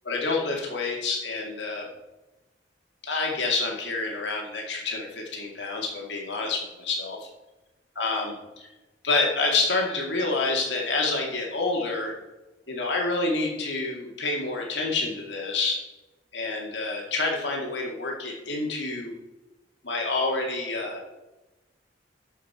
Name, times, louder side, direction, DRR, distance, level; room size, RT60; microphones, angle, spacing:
voice 1, 0.0-1.9 3.0-7.3 8.0-8.7 9.0-12.1 12.7-15.8 16.3-19.1 19.8-21.0, left 3 dB, 70° left, 0 dB, 2.3 m, -28 dB
13.0 x 5.6 x 4.3 m, 1.1 s
head